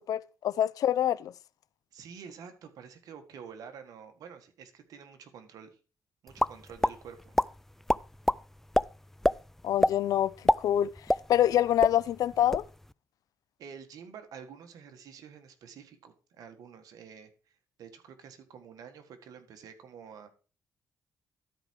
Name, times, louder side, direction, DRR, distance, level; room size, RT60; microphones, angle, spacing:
voice 1, 0.0-1.3 9.6-10.9 11.3-12.7, left 11 dB, 75° left, 0.4 m, -26 dB
voice 2, 1.9-5.8 6.2-7.3 13.6-17.3 17.8-20.3, right 7 dB, 75° right, 1.6 m, -48 dB
sound 1, 6.4-6.9 7.3-7.5 7.9-8.4 8.7-8.8 9.2-9.4 9.8-10.0 10.3-11.5 11.8-11.9 12.3-12.7, left 1 dB, 5° left, 0.3 m, -24 dB
12.5 x 4.9 x 4.6 m
cardioid pair, 75°, 6 cm